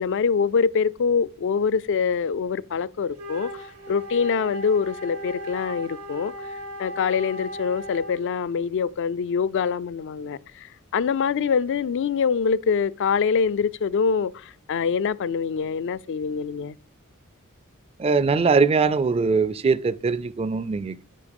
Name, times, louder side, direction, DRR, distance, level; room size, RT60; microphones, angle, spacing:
voice 1, 0.0-3.5 3.9-6.3 6.8-16.7, left 6 dB, 60° left, 0.4 m, -24 dB
Wind instrument woodwind instrument, 3.1-8.3, equal, 90° right, 1.6 m, -37 dB
voice 2, 18.0-21.0, right 4 dB, 25° right, 0.4 m, -21 dB
8.4 x 5.2 x 5.2 m
head